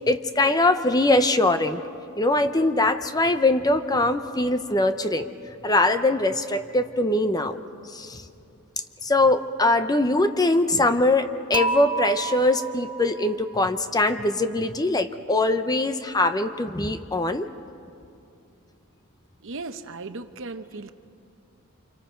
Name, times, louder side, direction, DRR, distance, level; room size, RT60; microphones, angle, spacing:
voice 1, 0.0-1.9 2.2-5.3 5.6-7.6 7.9-8.2 9.0-17.5, left 2 dB, 15° left, 9 dB, 0.7 m, -22 dB
Dishes pots and pans / Chink clink, 11.5-13.7, right 3 dB, 20° right, 0.7 m, -30 dB
voice 2, 19.4-20.9, right 3 dB, 60° right, 9 dB, 0.9 m, -36 dB
29.5 x 26.5 x 4.5 m, 2.6 s
head